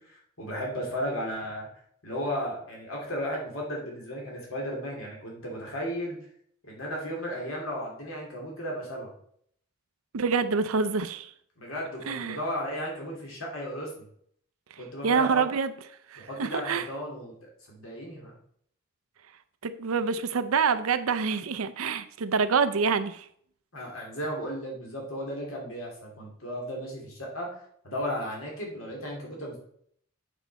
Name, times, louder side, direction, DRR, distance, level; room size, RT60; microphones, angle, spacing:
voice 1, 0.1-1.7 2.0-6.2 6.6-9.1 11.6-14.1 14.8-15.4 16.2-18.3 23.7-27.6 27.8-29.6, equal, 75° left, -2 dB, 2.8 m, -35 dB
voice 2, 10.1-11.3 12.1-12.4 15.0-15.7 16.1-16.9 19.6-23.3, right 5 dB, 80° right, 13 dB, 0.6 m, -26 dB
8.2 x 5.4 x 4.1 m, 0.66 s
head